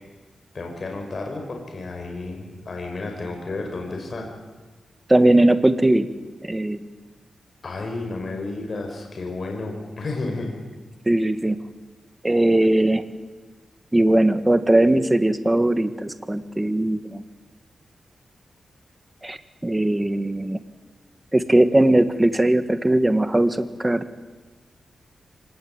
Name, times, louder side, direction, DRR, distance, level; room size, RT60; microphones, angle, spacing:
voice 1, 0.5-4.3 7.6-10.5, left 2 dB, 50° left, 2 dB, 6.0 m, -31 dB
voice 2, 5.1-6.1 6.4-6.8 11.1-11.6 12.2-13.0 13.9-17.2 19.2-20.6 21.3-24.0, right 1 dB, 15° right, 11 dB, 1.7 m, -19 dB
25.0 x 20.0 x 9.0 m, 1.3 s
cardioid pair, 65°, 0 cm